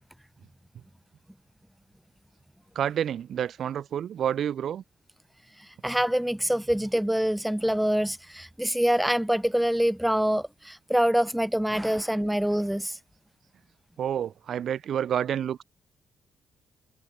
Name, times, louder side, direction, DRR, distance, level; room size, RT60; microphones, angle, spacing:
voice 1, 2.8-4.8 14.0-15.6, right 9 dB, 65° right, 2.3 m, -29 dB
voice 2, 5.8-13.0, equal, 5° right, 1.0 m, -25 dB
cardioid pair, 90°, 0 cm